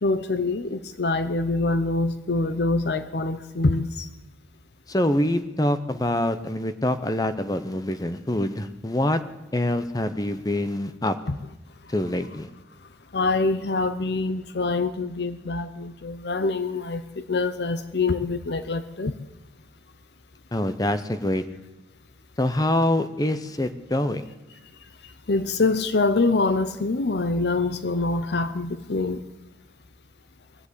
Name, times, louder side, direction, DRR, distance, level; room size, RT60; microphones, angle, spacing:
voice 1, 0.0-4.1 11.3-11.4 12.8-19.2 24.8-29.2, left 3 dB, 60° left, 12 dB, 0.7 m, -25 dB
voice 2, 4.9-9.2 9.5-11.1 11.9-12.5 20.5-21.4 22.4-24.2, left 1 dB, 20° left, 11 dB, 0.7 m, -25 dB
21.0 x 7.9 x 8.3 m, 1.0 s
head